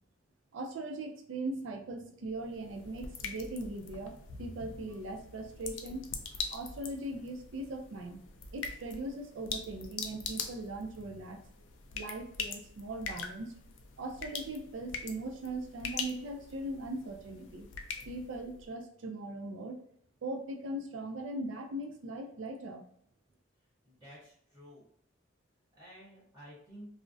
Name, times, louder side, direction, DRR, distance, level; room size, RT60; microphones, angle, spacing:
voice 1, 0.5-6.1 6.5-8.2 8.5-11.4 11.9-13.5 14.0-17.7 18.1-19.8 20.2-22.8, right 2 dB, 80° right, 4 dB, 0.4 m, -40 dB
sound 1, 2.2-18.7, left 5 dB, 75° left, 0.4 m, -43 dB
voice 2, 23.8-24.8 25.7-26.9, equal, 15° right, -8 dB, 0.8 m, -52 dB
2.4 x 2.0 x 2.5 m, 0.65 s
head